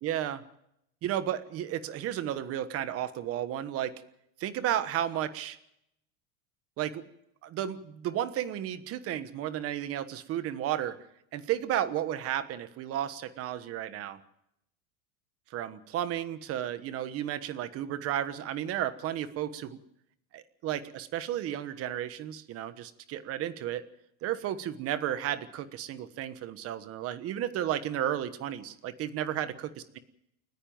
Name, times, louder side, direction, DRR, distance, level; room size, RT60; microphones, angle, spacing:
voice 1, 0.0-0.4 1.0-4.0 4.4-5.6 6.8-7.1 7.4-11.0 11.3-14.2 15.5-19.8 20.3-23.8 24.2-29.7, right 11 dB, 35° right, 13 dB, 1.2 m, -33 dB
29.5 x 10.0 x 8.8 m, 0.79 s
supercardioid pair, 155°, 42 cm